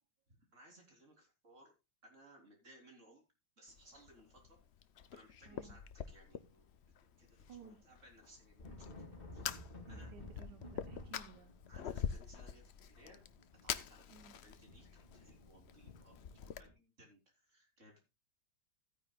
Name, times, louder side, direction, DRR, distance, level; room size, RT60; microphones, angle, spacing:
voice 1, 0.3-1.7 2.0-3.2 3.6-4.6 5.1-6.7 7.2-8.9 9.3-9.6 9.9-10.1 11.7-13.2 13.6-14.1 14.4-16.2 16.6-18.0, right 1 dB, 45° right, 1 dB, 3.9 m, -62 dB
Fire, 3.7-16.6, left 8 dB, 65° left, 0.6 m, -46 dB
voice 2, 5.4-5.8 7.5-7.8 9.8-11.6 14.1-14.4, right 6 dB, 85° right, 9 dB, 1.5 m, -57 dB
sound 1, 5.9-6.9 7.2-16.7, left 1 dB, 30° left, 2.4 m, -55 dB
15.5 x 9.3 x 2.3 m, 0.25 s
omnidirectional pair, 1.8 m